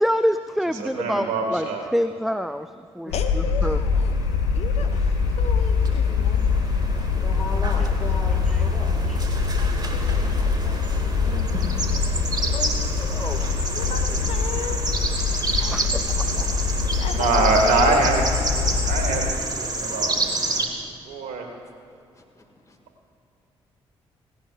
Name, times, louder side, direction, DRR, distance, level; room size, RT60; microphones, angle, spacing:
voice 1, 0.0-1.7 1.9-2.7 2.9-3.1 3.6-3.8 8.5-8.6 9.1-9.2 15.7-16.3, equal, ahead, 11 dB, 0.4 m, -25 dB
voice 2, 0.7-1.8 17.0-20.1 20.7-21.5, right 3 dB, 60° right, 3 dB, 2.0 m, -24 dB
sound 1, 3.1-19.3, left 5 dB, 70° left, 0.5 m, -24 dB
voice 3, 3.1-6.6 6.9-7.1 7.3-7.9 9.9-11.7 13.7-14.9 17.0-18.1, left 6 dB, 50° left, 6 dB, 0.9 m, -36 dB
sound 2, 3.2-20.7, right 2 dB, 30° right, 1.7 m, -30 dB
voice 4, 7.2-8.9 12.5-13.4 13.9-14.4 15.6-16.6 22.2-22.8, left 3 dB, 25° left, 1 dB, 2.2 m, -37 dB
17.0 x 17.0 x 2.5 m, 2.6 s
figure-of-eight pair, 40°, 14 cm